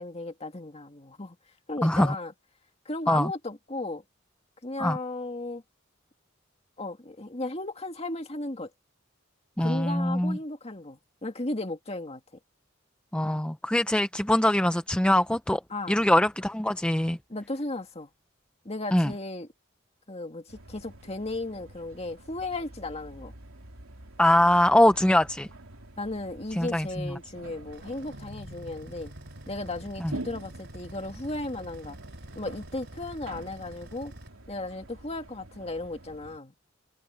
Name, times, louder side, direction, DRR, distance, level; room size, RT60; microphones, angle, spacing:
voice 1, 0.0-1.4 1.7-2.3 2.9-4.0 4.6-5.6 6.8-8.7 9.6-12.2 15.7-16.0 17.3-18.1 18.6-19.5 20.1-23.3 26.0-29.1 29.5-32.0 32.4-34.1 34.5-36.5, left 2 dB, 30° left, 2.0 m, -35 dB
voice 2, 1.8-2.1 3.1-3.3 4.8-5.0 9.6-10.4 13.1-15.6 15.9-17.2 18.9-19.1 24.2-25.5 26.5-27.1 30.0-30.1, left 1 dB, 5° left, 0.5 m, -23 dB
sound 1, 20.5-36.4, right 2 dB, 85° right, 3.4 m, -47 dB
sound 2, 27.7-34.3, right 1 dB, 55° right, 3.6 m, -47 dB
head